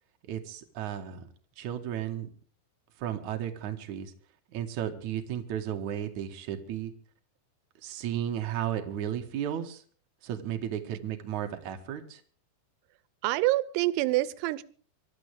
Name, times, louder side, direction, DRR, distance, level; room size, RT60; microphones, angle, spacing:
voice 1, 0.3-1.3 1.6-2.3 3.0-4.1 4.5-6.9 7.8-9.8 10.2-12.2, right 10 dB, 65° right, 5 dB, 2.0 m, -34 dB
voice 2, 13.2-14.6, right 18 dB, 85° right, 18 dB, 3.5 m, -26 dB
25.5 x 13.0 x 3.5 m, 0.44 s
omnidirectional pair, 6.0 m